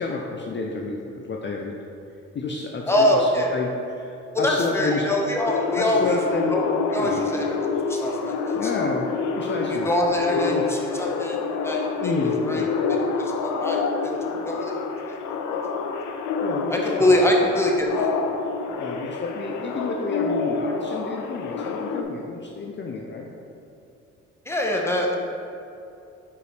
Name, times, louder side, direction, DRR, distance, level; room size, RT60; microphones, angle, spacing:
voice 1, 0.0-1.7 2.3-5.1 5.8-6.6 7.0-7.3 8.5-9.1 9.4-9.9 10.5-10.7 12.0-12.7 16.4-17.2 18.8-23.3, left 3 dB, 40° left, 0 dB, 0.6 m, -30 dB
voice 2, 2.9-3.6 4.4-6.2 6.5-8.9 9.7-11.4 11.6-12.1 12.5-12.6 13.2-14.1 14.5-14.7 15.1-15.4 16.7-18.1 24.5-25.2, left 1 dB, 10° left, -1 dB, 1.0 m, -24 dB
sound 1, 5.4-22.0, left 4 dB, 80° left, 0.6 m, -27 dB
5.1 x 4.7 x 4.9 m, 2.7 s
cardioid pair, 90°, 30 cm